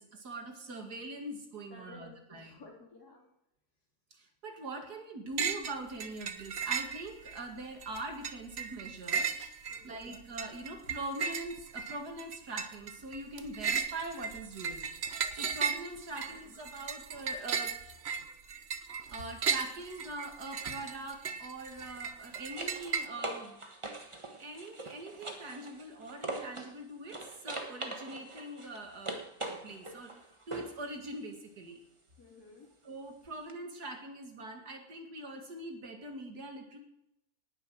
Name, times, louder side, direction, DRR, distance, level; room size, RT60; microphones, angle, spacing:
voice 1, 0.0-2.6 4.1-9.3 9.8-14.9 15.3-17.8 19.1-23.6 24.4-31.8 32.8-36.8, right 2 dB, 80° right, 4 dB, 2.6 m, -43 dB
voice 2, 1.7-3.3 9.7-10.1 16.3-16.4 32.2-32.7, left 3 dB, 70° left, -3 dB, 4.4 m, -54 dB
sound 1, 5.4-5.8 6.0-7.4 7.8-23.1, right 6 dB, 50° right, 1.0 m, -36 dB
sound 2, 19.3-19.5 21.8-26.8 27.1-30.8 33.5-33.6, right 2 dB, 20° right, 1.3 m, -42 dB
19.0 x 7.5 x 6.3 m, 0.83 s
omnidirectional pair, 1.7 m